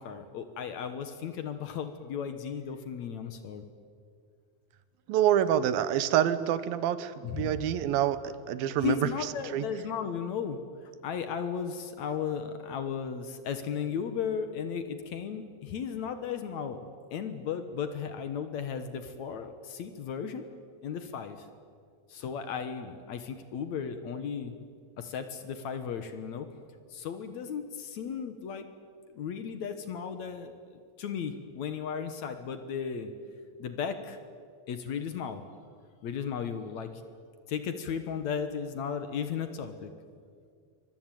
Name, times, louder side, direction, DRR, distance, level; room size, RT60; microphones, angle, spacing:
voice 1, 0.0-3.7 7.2-7.6 8.8-20.4 20.8-21.5 22.1-24.5 25.0-26.5 26.9-28.7 29.1-33.1 33.6-34.2 34.7-35.4 36.0-37.0 37.5-39.9, left 7 dB, 60° left, 9 dB, 2.2 m, -35 dB
voice 2, 5.1-9.1 9.5-9.6, right 10 dB, 85° right, 14 dB, 2.8 m, -27 dB
24.5 x 22.0 x 9.2 m, 2.1 s
omnidirectional pair, 4.1 m